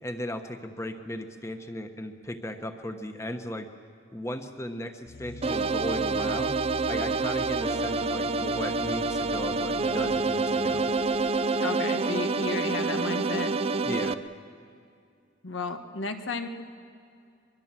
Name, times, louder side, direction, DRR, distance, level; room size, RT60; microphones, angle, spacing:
voice 1, 0.0-3.7 4.1-6.6 6.9-10.9 13.8-14.2, left 1 dB, 15° left, 7 dB, 1.2 m, -36 dB
sound 1, 5.1-11.6, left 3 dB, 50° left, 0.7 m, -44 dB
sound 2, 5.4-14.1, right 3 dB, 30° right, 0.5 m, -27 dB
voice 2, 11.6-13.5 15.4-16.5, left 4 dB, 85° left, 7 dB, 1.4 m, -33 dB
24.0 x 22.5 x 7.5 m, 2.5 s
head